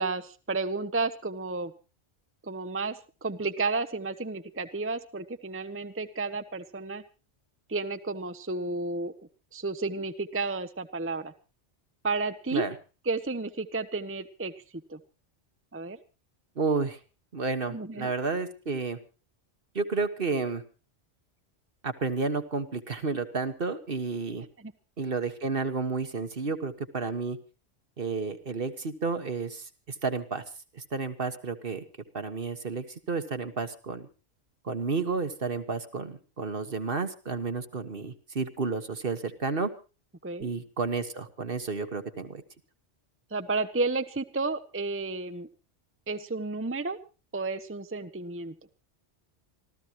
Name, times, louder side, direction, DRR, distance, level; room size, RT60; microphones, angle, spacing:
voice 1, 0.0-1.7 2.4-7.0 7.7-9.1 9.5-11.3 12.0-12.7 13.1-14.5 14.9-15.0 15.7-16.0 17.7-18.1 24.6-24.7 40.2-40.5 43.3-45.5 46.1-47.0 47.3-48.5, right 3 dB, 15° right, 9 dB, 0.8 m, -32 dB
voice 2, 16.6-17.0 17.3-19.0 19.7-20.6 21.8-24.5 25.0-27.4 28.0-30.4 30.7-31.8 32.1-34.1 34.6-39.7 40.4-42.4, right 4 dB, 50° right, 9 dB, 1.6 m, -31 dB
26.0 x 14.5 x 3.0 m, 0.33 s
omnidirectional pair, 1.2 m